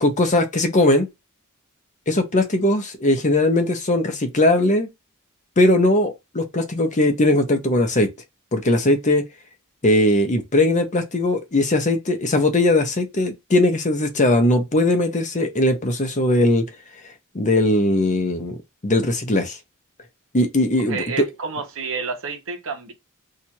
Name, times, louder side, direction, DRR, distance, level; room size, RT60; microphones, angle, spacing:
voice 1, 0.0-1.1 2.1-4.9 5.6-8.1 8.5-9.3 9.8-16.6 17.3-18.6 18.8-19.6 20.3-21.3, left 1 dB, 35° left, 0.8 m, -19 dB
voice 2, 20.9-22.9, right 5 dB, 65° right, 1.1 m, -29 dB
2.8 x 2.5 x 4.3 m
head